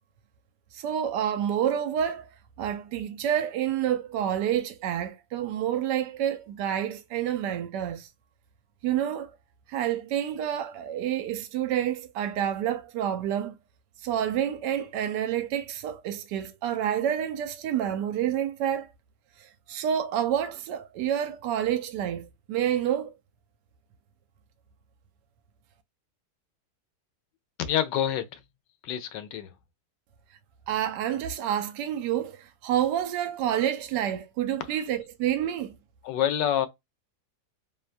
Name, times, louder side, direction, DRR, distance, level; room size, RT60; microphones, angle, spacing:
voice 1, 0.7-2.3 2.6-8.1 8.8-9.3 9.7-13.6 14.0-18.9 19.4-23.1 30.7-35.8, right 10 dB, 80° right, 1.2 m, -28 dB
voice 2, 27.6-28.4 28.8-29.5 36.0-36.7, left 10 dB, 80° left, 1.2 m, -27 dB
3.0 x 2.2 x 2.4 m
omnidirectional pair, 1.9 m